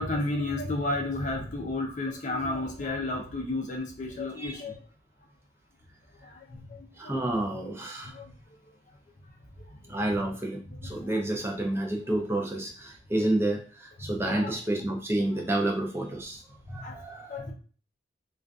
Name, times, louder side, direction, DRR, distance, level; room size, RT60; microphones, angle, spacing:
voice 1, 0.0-4.7 6.3-7.4 8.1-8.2 9.9-10.3 10.7-11.3 14.1-14.6 15.3-15.4 16.7-17.0 17.3-17.5, left 2 dB, 45° left, 1 dB, 0.5 m, -33 dB
voice 2, 7.0-8.1 9.9-16.4 16.7-17.4, right 1 dB, 15° right, 2 dB, 0.4 m, -29 dB
2.4 x 2.3 x 2.3 m, 0.40 s
head